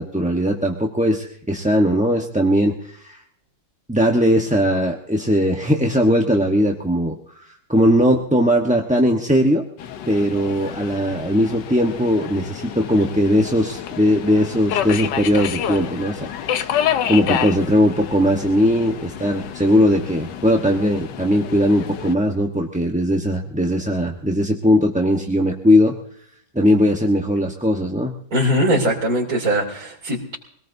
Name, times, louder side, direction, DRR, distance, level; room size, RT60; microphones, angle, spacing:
voice 1, 0.0-3.2 3.9-7.2 7.7-9.6 10.1-16.7 17.1-25.9 26.5-28.1, equal, 5° right, 0 dB, 0.9 m, -19 dB
Subway metro underground, 9.8-22.2, left 9 dB, 80° left, 1.5 m, -29 dB
voice 2, 28.3-30.3, equal, 55° right, -7 dB, 3.4 m, -21 dB
24.0 x 18.5 x 2.7 m, 0.66 s
omnidirectional pair, 1.9 m